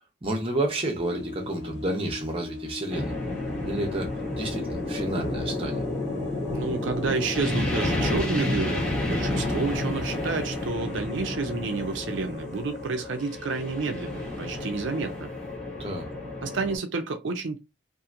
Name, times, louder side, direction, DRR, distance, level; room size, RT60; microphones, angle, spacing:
voice 1, 0.2-3.1 3.6-5.8 15.8-16.1, right 1 dB, 30° right, 0.8 m, -30 dB
sound 1, 1.0-15.2, left 4 dB, 70° left, 0.9 m, -42 dB
sound 2, 2.9-16.8, left 1 dB, 5° left, 1.1 m, -31 dB
voice 2, 6.5-15.3 16.4-17.6, right 4 dB, 75° right, 0.5 m, -30 dB
2.8 x 2.6 x 2.5 m
head